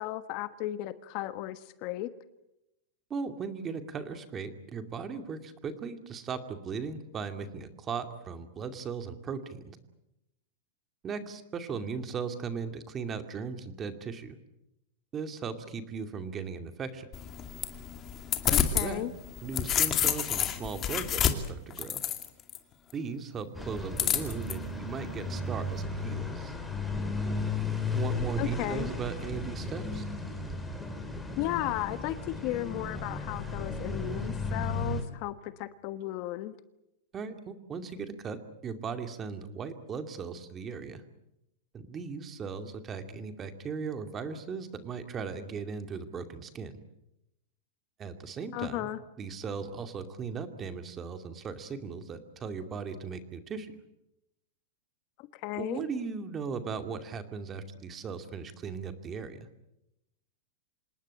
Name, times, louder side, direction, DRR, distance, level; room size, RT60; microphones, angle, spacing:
voice 1, 0.0-2.1 18.5-19.1 28.4-28.9 31.4-36.5 48.5-49.0 55.4-55.8, left 15 dB, 45° left, 12 dB, 1.3 m, -35 dB
voice 2, 3.1-9.8 11.0-14.4 15.1-17.1 18.5-19.1 19.4-22.0 22.9-26.6 27.9-30.0 37.1-41.0 41.7-46.7 48.0-48.9 49.2-53.7 55.6-59.4, right 5 dB, 20° right, 8 dB, 2.4 m, -38 dB
sound 1, 17.1-18.9 19.3-22.6 24.0-24.5, left 10 dB, 25° left, 2.4 m, -28 dB
sound 2, 23.5-35.0, left 2 dB, 5° left, 4.1 m, -34 dB
27.0 x 19.5 x 8.9 m, 0.88 s
supercardioid pair, 150°, 0 cm